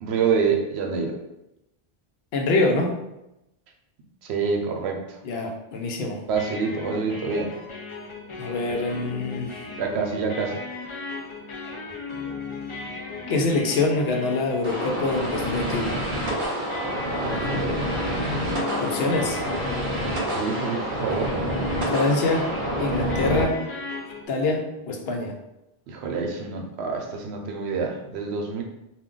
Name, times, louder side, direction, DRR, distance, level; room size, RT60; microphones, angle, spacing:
voice 1, 0.0-1.1 4.2-5.0 6.3-7.5 9.8-10.6 17.2-17.9 20.3-21.3 25.9-28.6, right 5 dB, 85° right, 2 dB, 0.8 m, -27 dB
voice 2, 2.3-3.0 5.2-6.2 8.4-9.6 13.3-16.0 17.4-17.5 18.8-19.4 21.9-22.5 22.8-23.6 24.3-25.3, left 3 dB, 75° left, 2 dB, 0.8 m, -25 dB
sound 1, 6.3-24.3, left 4 dB, 50° left, 0.3 m, -37 dB
sound 2, 14.6-23.4, right 1 dB, 55° right, 0.8 m, -28 dB
2.3 x 2.2 x 3.7 m, 0.89 s
omnidirectional pair, 1.1 m